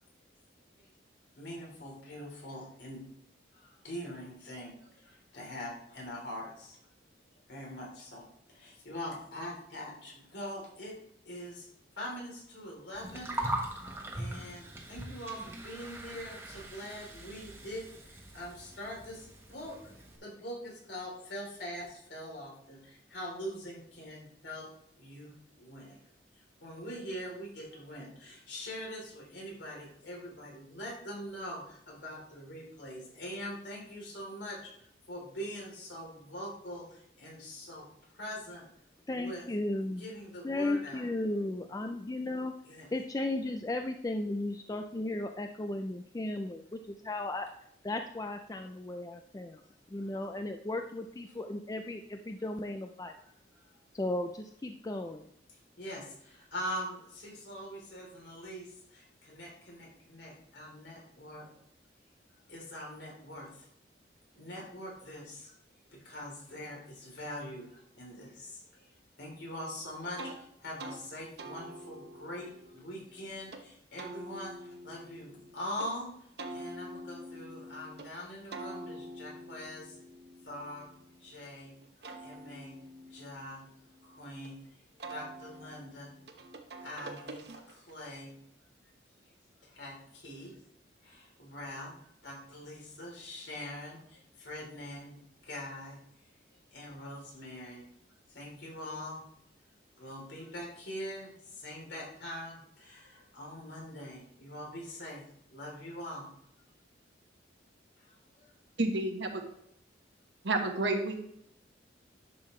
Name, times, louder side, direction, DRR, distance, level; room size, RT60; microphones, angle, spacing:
voice 1, 1.4-3.0 3.5-6.8 7.5-10.9 11.2-11.7 12.0-13.3 14.1-19.8 20.2-24.7 25.0-26.0 26.6-37.8 38.1-38.6 39.1-39.5 40.0-41.0 42.6-42.9 50.0-50.1 53.2-53.3 53.6-53.7 55.8-61.5 62.5-63.7 64.3-65.5 65.9-68.9 69.2-70.3 70.6-76.1 76.5-80.0 80.4-80.9 81.2-81.7 82.2-82.7 83.1-83.6 84.0-84.6 85.1-86.1 86.8-88.3 89.6-90.5 91.0-91.9 92.2-95.2 95.4-96.0 96.7-97.8 98.3-99.2 100.0-105.2 105.5-106.3 108.0-108.5, equal, 70° left, -2 dB, 3.3 m, -43 dB
Gurgling, 12.9-20.2, right 1 dB, 15° right, 1.2 m, -41 dB
voice 2, 39.1-40.1 40.4-47.5 47.8-49.6 49.9-53.1 53.9-55.2, left 2 dB, 20° left, 5 dB, 0.4 m, -35 dB
sound 1, 70.2-70.4 70.8-71.0 71.4-73.6 74.0-75.9 76.4-78.1 78.5-81.4 81.8-84.5 85.0-88.0, right 1 dB, 60° right, 1.0 m, -46 dB
voice 3, 108.8-109.3 110.4-111.2, right 2 dB, 80° right, 3 dB, 1.4 m, -29 dB
11.0 x 6.6 x 3.2 m, 0.72 s
head